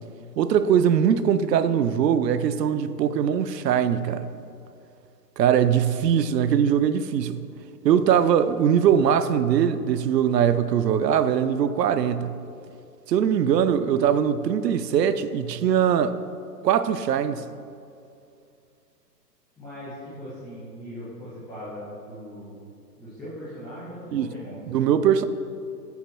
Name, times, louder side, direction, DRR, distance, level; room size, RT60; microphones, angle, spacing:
voice 1, 0.4-4.3 5.4-7.4 7.8-12.3 13.1-16.2 16.6-17.4 24.1-24.3 24.7-25.3, right 8 dB, 75° right, 0.6 m, -21 dB
voice 2, 19.6-22.6 23.0-24.6, equal, ahead, 0.4 m, -39 dB
7.2 x 4.5 x 5.9 m
hypercardioid pair, 155°, 49 cm